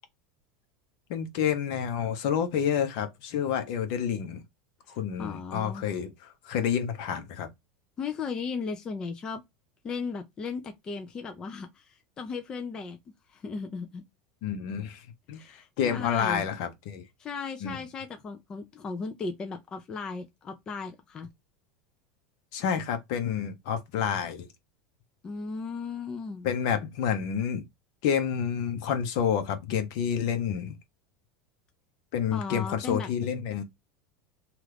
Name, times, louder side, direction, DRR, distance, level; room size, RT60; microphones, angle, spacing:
voice 1, 1.1-4.4 5.0-6.1 6.4-7.5 14.4-17.0 17.6-17.8 22.5-24.5 26.4-27.6 28.0-30.7 32.1-33.6, left 8 dB, 55° left, 0.9 m, -29 dB
voice 2, 4.9-5.9 8.0-9.4 9.8-13.0 13.3-14.0 15.3-16.4 17.2-21.3 25.2-26.5 32.3-33.1, left 5 dB, 20° left, 0.4 m, -36 dB
2.9 x 2.4 x 3.3 m
supercardioid pair, 160°, 4 cm